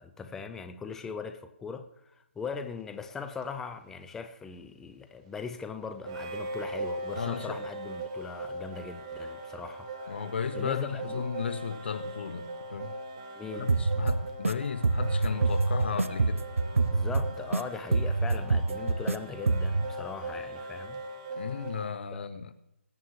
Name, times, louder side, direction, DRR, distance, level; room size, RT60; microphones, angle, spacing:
voice 1, 0.0-11.2 13.4-13.8 16.9-21.0 22.1-22.3, left 5 dB, 5° left, 0.4 m, -40 dB
sound 1, 3.4-3.5 6.0-21.9, right 2 dB, 25° right, 1.1 m, -40 dB
voice 2, 7.2-7.6 10.1-12.9 13.6-16.4 21.4-22.5, left 6 dB, 55° left, 0.8 m, -35 dB
sound 2, 13.7-14.5 14.8-17.6 17.9-19.2 19.5-19.9, right 3 dB, 90° right, 0.6 m, -26 dB
20.5 x 9.2 x 3.2 m
figure-of-eight pair, 150°, 7 cm